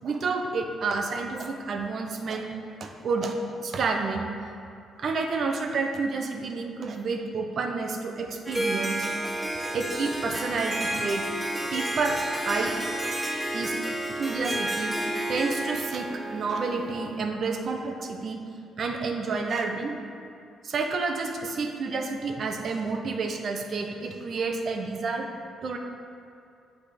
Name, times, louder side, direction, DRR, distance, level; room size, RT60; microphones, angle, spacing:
voice 1, 0.0-2.5 2.8-4.3 5.0-9.1 9.7-11.3 11.7-12.2 12.4-12.8 13.5-13.8 14.2-15.0 15.3-18.4 18.8-20.0 20.6-25.3 25.6-25.8, right 4 dB, 55° right, 3 dB, 0.7 m, -29 dB
Harp, 8.5-17.2, right 1 dB, 10° right, 0.7 m, -31 dB
7.9 x 3.5 x 5.0 m, 2.5 s
cardioid pair, 90°, 0 cm